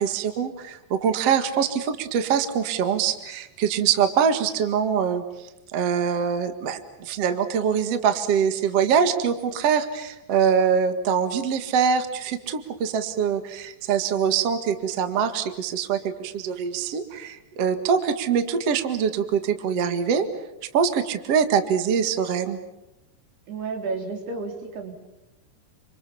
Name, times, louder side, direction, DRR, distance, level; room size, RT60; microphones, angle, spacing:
voice 1, 0.0-5.2 5.7-20.3 20.7-22.6, right 7 dB, 50° right, 9 dB, 2.1 m, -24 dB
voice 2, 23.5-24.9, right 4 dB, 65° right, 4 dB, 5.6 m, -31 dB
29.5 x 26.5 x 7.1 m, 0.92 s
omnidirectional pair, 5.0 m